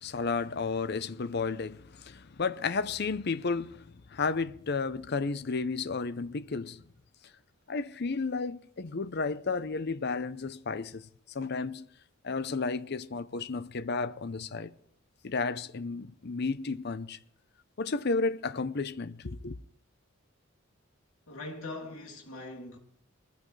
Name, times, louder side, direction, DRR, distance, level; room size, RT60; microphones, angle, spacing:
voice 1, 0.0-3.8 4.1-6.8 7.7-11.1 11.3-11.9 12.2-14.7 15.2-17.2 17.8-19.6, left 4 dB, 50° left, 0.6 m, -32 dB
voice 2, 21.3-22.8, left 2 dB, 85° left, 2.7 m, -41 dB
21.0 x 14.5 x 3.2 m
head